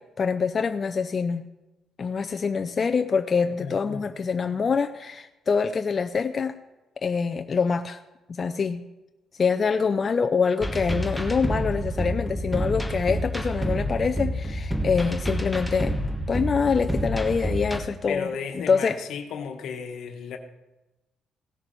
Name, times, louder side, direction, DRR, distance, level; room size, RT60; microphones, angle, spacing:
voice 1, 0.2-1.4 2.0-6.5 7.0-8.0 8.4-8.8 9.4-16.0 16.3-18.3 18.6-19.0, left 5 dB, 40° left, 7 dB, 0.5 m, -25 dB
voice 2, 3.6-4.0 18.1-20.4, left 6 dB, 80° left, 5 dB, 1.2 m, -34 dB
sound 1, 10.6-17.8, equal, ahead, 1.1 m, -28 dB
17.0 x 6.5 x 4.6 m, 1.0 s
cardioid pair, 90°, 0 cm